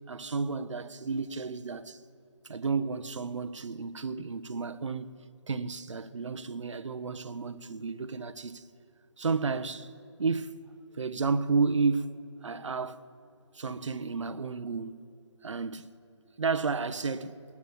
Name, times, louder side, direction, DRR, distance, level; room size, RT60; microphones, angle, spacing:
voice 1, 0.1-2.0 2.5-5.1 5.5-8.6 9.2-9.9 10.2-10.5 11.0-13.0 13.5-15.0 15.4-15.9 16.4-17.4, right 4 dB, 75° right, 0.8 m, -32 dB
21.0 x 7.2 x 7.7 m
hypercardioid pair, 170°, 16 cm